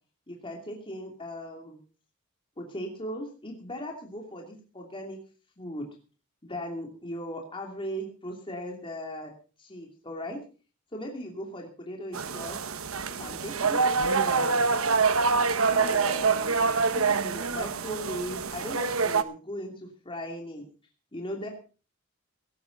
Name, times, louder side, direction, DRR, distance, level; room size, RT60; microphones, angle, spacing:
voice 1, 0.3-1.8 2.6-5.2 5.6-5.9 6.4-9.3 9.6-10.4 10.9-12.6 13.2-14.8 15.7-16.8 17.0-20.6 21.1-21.5, equal, 25° left, 1 dB, 2.8 m, -38 dB
sound 1, 12.1-19.2, right 4 dB, 75° right, 1.1 m, -26 dB
17.5 x 13.0 x 4.0 m, 0.36 s
head